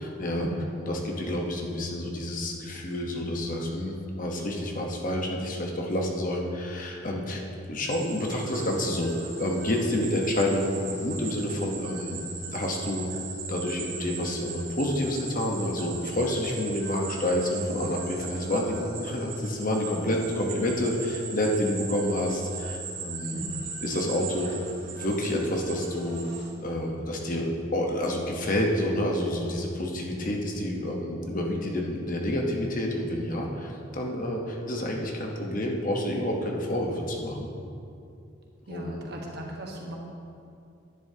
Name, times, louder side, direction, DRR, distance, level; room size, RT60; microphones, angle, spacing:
voice 1, 0.3-0.7 18.2-18.9 23.3-23.7 38.7-39.9, right 1 dB, 50° right, -1 dB, 1.3 m, -37 dB
voice 2, 0.9-7.4 7.7-12.2 12.5-13.1 13.5-23.3 23.8-24.5 24.9-26.2 26.6-37.5 38.7-39.0, left 1 dB, 40° left, 0 dB, 1.0 m, -29 dB
sound 1, 7.8-26.5, right 5 dB, 70° right, 1.5 m, -39 dB
11.0 x 9.9 x 2.8 m, 2.5 s
head